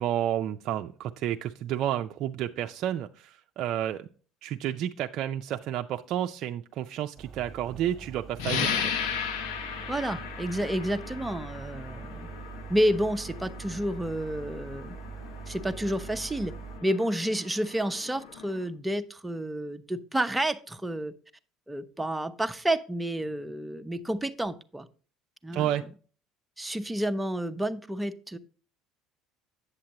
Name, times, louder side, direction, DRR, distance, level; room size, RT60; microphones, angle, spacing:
voice 1, 0.0-4.1 4.4-8.9 25.5-25.8 26.7-26.8, right 11 dB, 60° right, 6 dB, 0.4 m, -31 dB
sound 1, 7.2-16.8, right 5 dB, 40° right, 1.0 m, -43 dB
sound 2, 8.4-18.7, left 7 dB, 80° left, 0.9 m, -37 dB
voice 2, 9.9-12.3 12.7-15.0 15.5-16.5 16.8-21.1 21.7-24.9 25.4-25.8 26.6-28.4, right 1 dB, 10° right, 9 dB, 0.6 m, -30 dB
8.0 x 7.4 x 2.9 m, 0.39 s
supercardioid pair, 80°, 0 cm